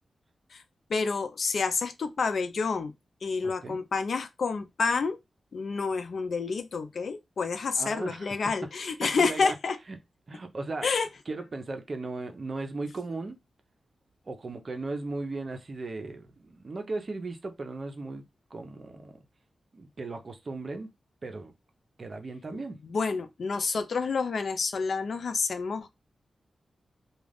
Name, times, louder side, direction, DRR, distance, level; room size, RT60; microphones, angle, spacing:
voice 1, 0.9-2.9 3.2-5.2 5.5-9.8 10.8-11.1 22.9-25.9, left 4 dB, 70° left, 0.4 m, -29 dB
voice 2, 3.4-3.8 7.7-8.5 9.0-9.5 9.9-10.0 10.3-10.9 11.3-13.4 14.3-18.2 18.5-19.2 19.7-20.9 21.2-21.5 22.0-22.8, right 3 dB, 50° right, 0.6 m, -37 dB
2.4 x 2.3 x 3.3 m
cardioid pair, 60°, 0 cm